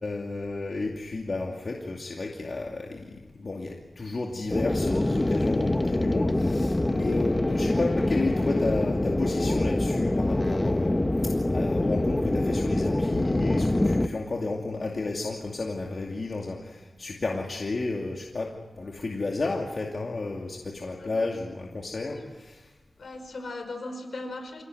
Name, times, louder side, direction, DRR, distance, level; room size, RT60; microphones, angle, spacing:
voice 1, 0.0-22.7, left 3 dB, 50° left, 0 dB, 2.5 m, -32 dB
sound 1, 4.5-14.1, left 1 dB, 20° left, 1.0 m, -25 dB
voice 2, 21.0-21.3 22.0-22.3 23.0-24.6, left 2 dB, 70° left, 6 dB, 5.2 m, -38 dB
27.0 x 18.0 x 9.3 m, 1.2 s
wide cardioid pair, 95°, 0 cm